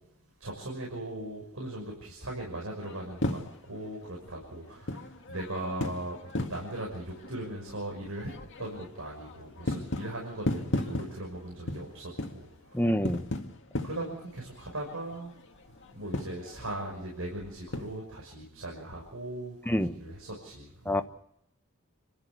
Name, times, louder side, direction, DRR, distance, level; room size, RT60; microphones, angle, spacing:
voice 1, 0.4-3.4 3.7-8.3 8.6-12.8 13.8-15.3 15.9-21.0, right 1 dB, 70° right, 6.2 m, -39 dB
sound 1, 2.7-18.0, left 1 dB, 55° left, 2.1 m, -37 dB
voice 2, 12.7-13.2 19.7-19.9 20.9-21.0, equal, 10° left, 1.0 m, -26 dB
28.0 x 14.0 x 8.3 m
head